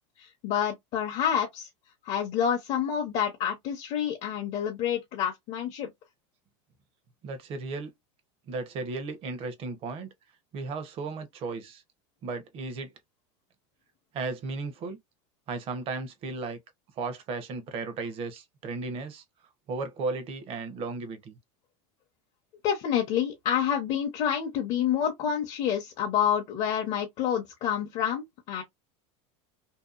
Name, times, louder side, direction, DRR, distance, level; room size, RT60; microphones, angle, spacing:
voice 1, 0.2-1.7 2.0-5.9 22.6-28.6, left 9 dB, 45° left, 0.6 m, -28 dB
voice 2, 7.2-7.9 8.5-10.1 10.5-11.8 12.2-12.9 14.1-15.0 15.5-16.6 17.0-19.2 19.7-21.4, right 3 dB, 40° right, 0.7 m, -35 dB
2.7 x 2.2 x 2.4 m
supercardioid pair, 135°, 15 cm